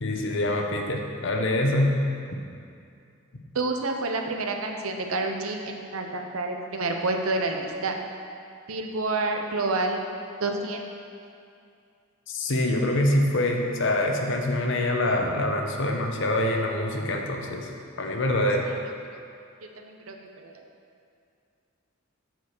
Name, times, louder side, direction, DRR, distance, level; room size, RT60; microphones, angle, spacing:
voice 1, 0.0-2.0 12.3-17.7 18.0-18.7, left 1 dB, 65° left, 2 dB, 0.9 m, -25 dB
voice 2, 3.5-7.9 8.7-10.0 10.4-10.8 18.6-18.7 19.8-20.7, right 2 dB, 90° right, 3 dB, 0.8 m, -29 dB
7.9 x 4.7 x 6.5 m, 2.4 s
head